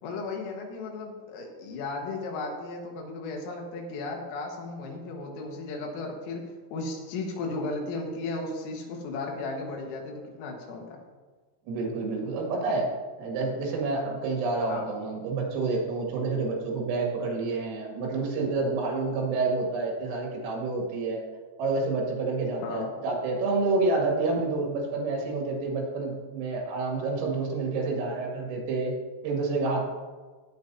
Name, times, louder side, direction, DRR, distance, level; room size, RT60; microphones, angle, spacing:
voice 1, 0.0-6.4 6.7-11.0 14.7-14.9 22.6-22.9, left 3 dB, 85° left, 1 dB, 4.1 m, -35 dB
voice 2, 11.7-12.9 13.2-21.2 21.6-28.9 29.2-29.9, right 3 dB, 85° right, -1 dB, 4.7 m, -28 dB
18.0 x 8.4 x 2.7 m, 1.3 s
omnidirectional pair, 5.8 m